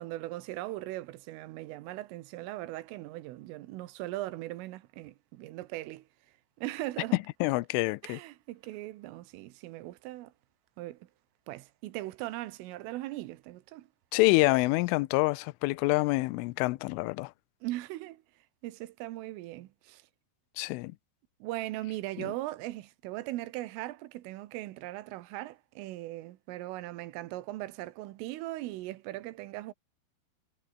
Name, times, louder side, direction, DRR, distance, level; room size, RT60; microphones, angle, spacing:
voice 1, 0.0-6.1 6.6-7.2 8.0-10.3 10.8-11.1 11.5-13.9 17.6-18.2 18.6-20.0 21.4-29.7, right 17 dB, 85° right, 3.8 m, -39 dB
voice 2, 7.4-8.2 14.1-17.3 20.6-20.9 22.2-22.3, left 22 dB, 85° left, 3.2 m, -26 dB
omnidirectional pair, 5.7 m